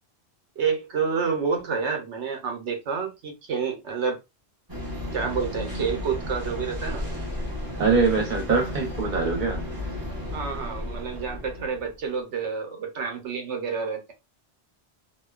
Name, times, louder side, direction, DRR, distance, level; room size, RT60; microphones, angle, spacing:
voice 1, 0.6-4.2 5.1-7.0 10.3-14.1, right 5 dB, 90° right, 1.1 m, -29 dB
sound 1, 4.7-12.0, left 1 dB, 20° right, 0.7 m, -33 dB
voice 2, 7.8-9.6, right 4 dB, 45° right, 1.0 m, -23 dB
2.7 x 2.2 x 2.3 m
omnidirectional pair, 1.1 m